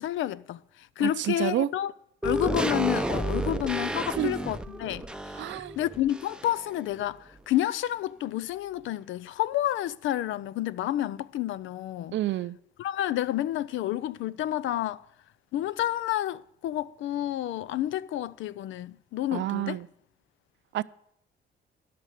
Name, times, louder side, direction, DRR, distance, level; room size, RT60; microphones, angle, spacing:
voice 1, 0.0-1.9 2.2-12.2 12.8-15.0 15.5-19.8, left 13 dB, 75° left, 0.5 m, -30 dB
voice 2, 1.0-1.7 4.2-4.3 5.4-5.8 12.1-12.6 19.3-19.9 20.7-20.8, right 14 dB, 70° right, 0.5 m, -29 dB
sound 1, 2.2-6.7 7.0-7.1, right 1 dB, 5° right, 0.7 m, -31 dB
12.5 x 6.0 x 9.2 m
cardioid pair, 90°, 20 cm